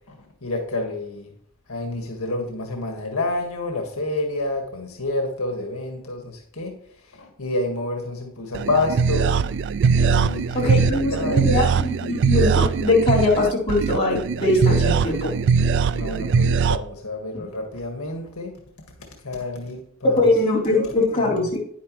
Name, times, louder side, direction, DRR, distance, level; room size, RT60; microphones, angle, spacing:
voice 1, 0.4-1.3 1.7-6.7 7.2-9.3 10.1-11.6 15.8-18.5 19.2-20.3 20.7-20.9 21.2-21.4, left 2 dB, 80° left, 2 dB, 1.7 m, -29 dB
sound 1, 8.5-16.8, right 6 dB, 55° right, 0.3 m, -21 dB
voice 2, 10.5-15.3 17.3-17.4 20.0-21.6, left 2 dB, 25° left, -5 dB, 3.7 m, -21 dB
10.0 x 9.4 x 3.1 m, 0.63 s
head